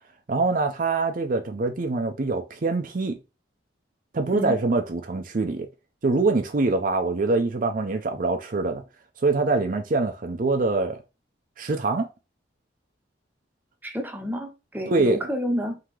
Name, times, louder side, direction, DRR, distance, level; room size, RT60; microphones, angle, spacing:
voice 1, 0.3-3.2 4.1-5.7 6.0-8.8 9.2-11.0 11.6-12.1 14.9-15.2, right 3 dB, 45° right, 0.6 m, -24 dB
voice 2, 4.3-4.6 13.8-15.8, equal, 10° right, 0.7 m, -30 dB
3.8 x 2.8 x 4.6 m
head